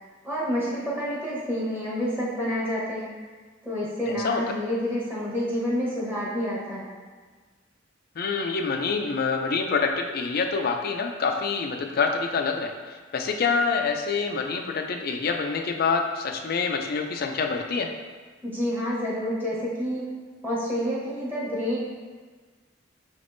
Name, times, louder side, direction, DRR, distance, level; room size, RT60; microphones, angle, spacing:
voice 1, 0.2-3.2 3.6-6.9 18.4-20.1 20.4-21.8, equal, 10° right, -8 dB, 1.0 m, -28 dB
voice 2, 4.1-4.4 8.2-17.9, left 5 dB, 50° left, 4 dB, 0.4 m, -26 dB
5.6 x 3.5 x 2.6 m, 1.4 s
head